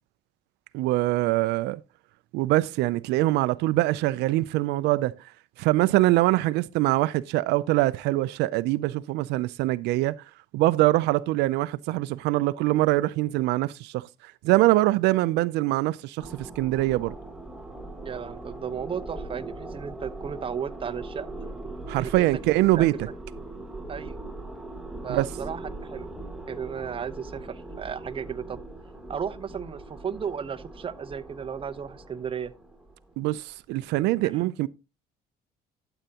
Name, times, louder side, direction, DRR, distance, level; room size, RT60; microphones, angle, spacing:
voice 1, 0.7-1.8 2.3-5.1 5.6-10.2 10.5-17.1 21.9-22.9 25.1-25.3 33.2-34.7, right 18 dB, 90° right, 0.4 m, -23 dB
sound 1, 16.2-33.5, right 2 dB, ahead, 1.4 m, -40 dB
voice 2, 18.0-21.3 22.0-22.4 22.8-23.1 23.9-24.2 25.0-26.1 26.5-28.6 29.1-32.5 34.2-34.4, right 7 dB, 30° right, 0.8 m, -34 dB
12.5 x 8.0 x 2.8 m
cardioid pair, 110°, 17 cm